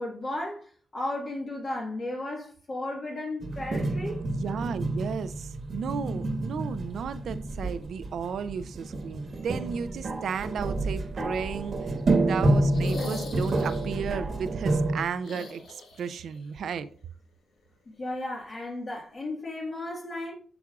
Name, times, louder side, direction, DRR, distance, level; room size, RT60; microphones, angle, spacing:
voice 1, 0.0-4.2 17.9-20.3, left 1 dB, 45° left, 1.6 m, -34 dB
sound 1, 3.4-15.0, right 2 dB, 55° right, 1.1 m, -29 dB
voice 2, 4.2-16.9, right 6 dB, 75° right, 0.4 m, -34 dB
sound 2, 12.7-14.1 15.2-16.4 16.6-16.7 18.4-18.5, left 3 dB, 80° left, 1.4 m, -41 dB
8.2 x 6.0 x 2.4 m
cardioid pair, 75°, 0 cm